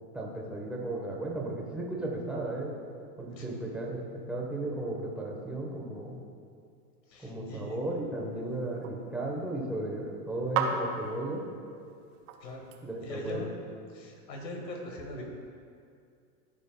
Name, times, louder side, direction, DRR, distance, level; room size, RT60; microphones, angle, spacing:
voice 1, 0.1-2.7 3.2-6.2 7.2-11.4 12.8-13.5, right 2 dB, ahead, -3 dB, 1.1 m, -35 dB
voice 2, 7.1-7.9 12.4-12.7 13.0-13.5 13.9-15.2, left 1 dB, 85° left, 0 dB, 1.8 m, -41 dB
sound 1, 7.5-13.3, right 5 dB, 60° right, 0.9 m, -38 dB
13.5 x 5.1 x 2.3 m, 2.4 s
hypercardioid pair, 120°, 50 cm